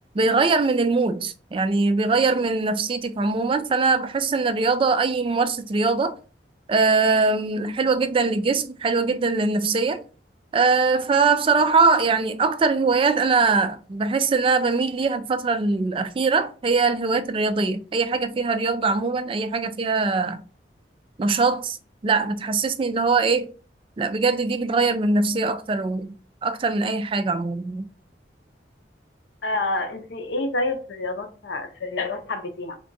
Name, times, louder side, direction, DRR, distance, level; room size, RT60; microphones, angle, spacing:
voice 1, 0.1-6.2 6.7-10.0 10.5-20.4 21.2-21.8 22.0-23.5 24.0-26.1 26.4-27.8, right 4 dB, 30° right, 0.3 m, -22 dB
voice 2, 29.4-32.8, left 2 dB, 80° left, 0.7 m, -28 dB
3.5 x 2.3 x 3.9 m
head